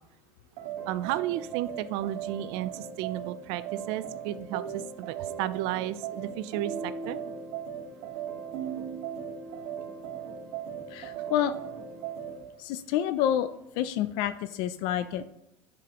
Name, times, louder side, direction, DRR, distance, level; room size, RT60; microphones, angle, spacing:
sound 1, 0.6-12.4, right 7 dB, 85° right, 1.2 m, -38 dB
voice 1, 0.9-7.2 10.7-10.8 11.2-11.3, right 13 dB, 70° right, 15 dB, 0.4 m, -33 dB
voice 2, 10.9-11.5 12.6-13.5 13.8-15.3, left 11 dB, 65° left, 12 dB, 0.4 m, -28 dB
10.5 x 4.9 x 2.9 m, 0.88 s
cardioid pair, 160°, 8 cm